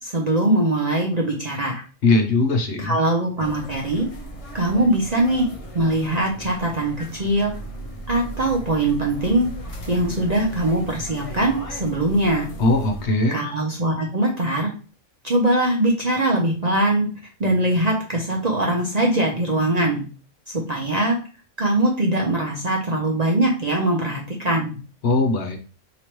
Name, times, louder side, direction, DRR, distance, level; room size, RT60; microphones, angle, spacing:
voice 1, 0.0-1.7 2.8-4.1 4.5-5.5 5.7-7.5 8.1-9.5 9.9-12.5 13.3-14.7 15.2-17.1 17.4-20.1 20.5-21.2 21.6-24.8, right 1 dB, 40° right, -1 dB, 0.7 m, -21 dB
voice 2, 2.0-3.0 12.6-13.4 25.0-25.6, left 2 dB, 60° left, 4 dB, 0.9 m, -20 dB
sound 1, 3.4-13.1, right 1 dB, 35° left, 0.6 m, -36 dB
4.7 x 2.9 x 3.0 m, 0.36 s
omnidirectional pair, 1.4 m